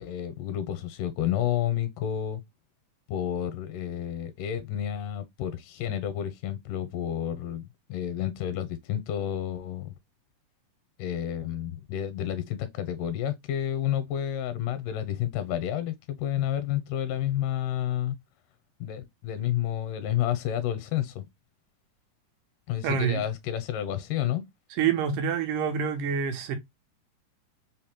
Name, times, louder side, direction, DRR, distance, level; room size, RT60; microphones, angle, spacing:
voice 1, 0.0-2.4 3.1-9.9 11.0-18.2 18.8-21.3 22.7-24.4, left 11 dB, 85° left, 2.1 m, -30 dB
voice 2, 22.8-23.2 24.7-26.6, right 7 dB, 75° right, 2.1 m, -27 dB
5.3 x 2.0 x 2.9 m
omnidirectional pair, 3.9 m